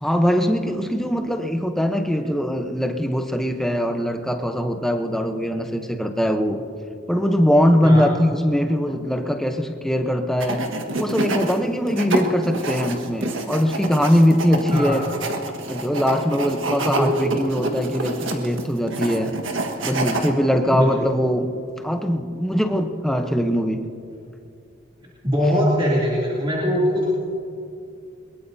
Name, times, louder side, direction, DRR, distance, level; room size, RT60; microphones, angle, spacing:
voice 1, 0.0-6.6 7.1-10.6 10.9-15.1 15.7-19.4 19.8-21.5 21.8-23.9, equal, ahead, 5 dB, 0.8 m, -21 dB
voice 2, 7.8-8.1 14.7-15.1 17.0-17.4 20.7-21.1 25.2-27.3, equal, 25° right, -7 dB, 2.9 m, -21 dB
sound 1, 10.4-11.5 11.9-20.3, right 2 dB, 75° right, 1.6 m, -27 dB
22.5 x 22.0 x 2.8 m, 2.6 s
head